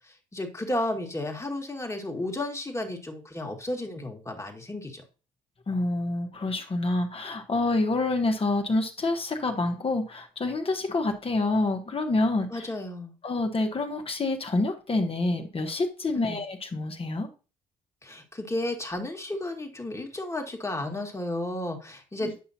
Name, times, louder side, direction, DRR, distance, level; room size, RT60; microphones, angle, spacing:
voice 1, 0.1-5.0 12.5-13.1 16.2-16.4 18.0-22.4, left 1 dB, 15° left, 3 dB, 1.8 m, -33 dB
voice 2, 5.7-12.7 13.2-17.3 22.2-22.4, left 2 dB, 35° left, 4 dB, 1.4 m, -27 dB
9.5 x 5.6 x 2.8 m, 0.34 s
hypercardioid pair, 55°, 17 cm